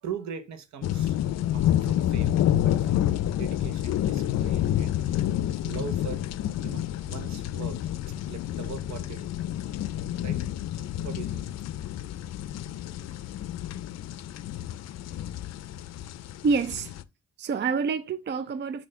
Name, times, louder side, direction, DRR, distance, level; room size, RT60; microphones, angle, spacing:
voice 1, 0.0-1.2 1.5-7.8 8.2-9.3 10.2-10.4 11.0-11.4 12.8-12.9, right 7 dB, 70° right, 1.1 m, -41 dB
sound 1, 0.8-17.0, left 12 dB, 60° left, 0.5 m, -29 dB
voice 2, 16.4-16.9 17.4-18.9, right 5 dB, 35° right, 0.5 m, -27 dB
6.6 x 2.8 x 5.5 m
cardioid pair, 90°, 30 cm